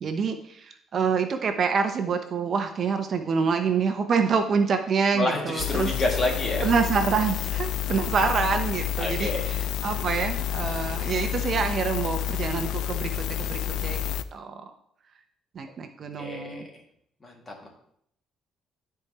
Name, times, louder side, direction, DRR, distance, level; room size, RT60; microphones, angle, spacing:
voice 1, 0.0-5.9 6.6-14.7 15.5-16.7, right 5 dB, 45° right, 7 dB, 0.6 m, -26 dB
voice 2, 5.1-6.6 9.0-9.4 16.2-16.6 17.2-17.7, left 2 dB, 20° left, 0 dB, 1.9 m, -28 dB
sound 1, 5.6-14.2, left 11 dB, 70° left, 0.4 m, -29 dB
13.0 x 4.6 x 2.9 m, 0.70 s
cardioid pair, 125°, 0 cm